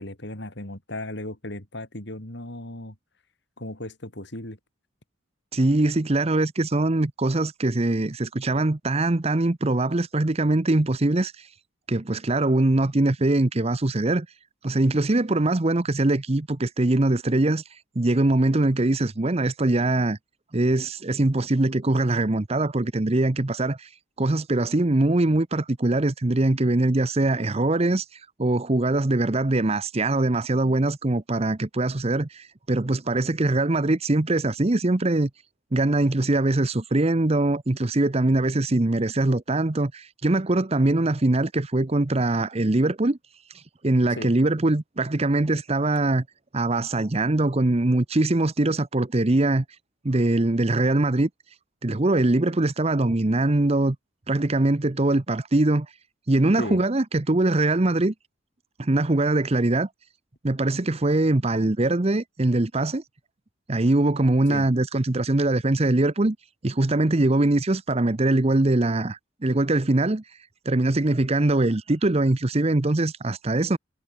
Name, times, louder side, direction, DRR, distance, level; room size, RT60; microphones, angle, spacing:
voice 1, 0.0-3.0 3.6-4.6 44.1-44.3 56.6-56.8 64.5-64.7, left 1 dB, 55° left, 4.2 m, -36 dB
voice 2, 5.5-11.5 11.9-14.3 14.6-20.2 20.5-23.9 24.2-35.3 35.7-43.2 43.5-46.2 46.5-49.6 50.0-51.3 51.8-54.0 54.3-55.9 56.3-58.1 58.8-59.9 60.4-63.0 63.7-66.4 66.6-70.2 70.6-73.8, right 2 dB, 30° right, 0.8 m, -22 dB
head